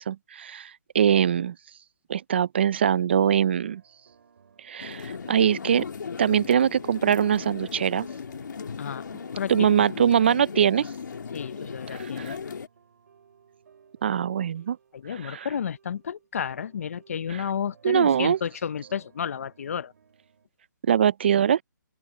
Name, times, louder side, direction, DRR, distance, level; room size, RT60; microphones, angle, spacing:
voice 1, 0.0-1.6 2.1-3.8 4.6-5.9 6.2-8.1 9.5-10.9 11.9-12.4 14.0-14.8 15.1-15.5 17.3-17.4 17.8-18.4 20.9-21.6, right 9 dB, 35° right, 0.4 m, -23 dB
sound 1, 3.4-20.5, right 7 dB, 55° right, 4.3 m, -59 dB
sound 2, 4.8-12.7, left 6 dB, 70° left, 1.9 m, -37 dB
voice 2, 9.3-9.7 11.3-12.4 14.9-19.9, left 8 dB, 45° left, 0.6 m, -32 dB
open air
hypercardioid pair, 165°, 10 cm